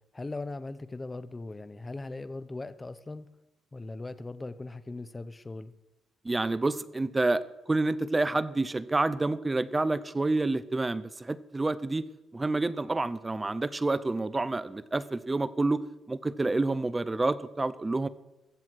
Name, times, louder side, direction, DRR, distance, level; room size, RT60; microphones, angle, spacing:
voice 1, 0.1-3.3 3.7-5.7, left 2 dB, 20° left, 14 dB, 0.8 m, -39 dB
voice 2, 6.2-7.4 7.7-12.0 12.3-15.8 16.1-18.1, right 2 dB, 20° right, 16 dB, 0.7 m, -28 dB
21.0 x 7.7 x 4.7 m, 1.0 s
cardioid pair, 90°, 0 cm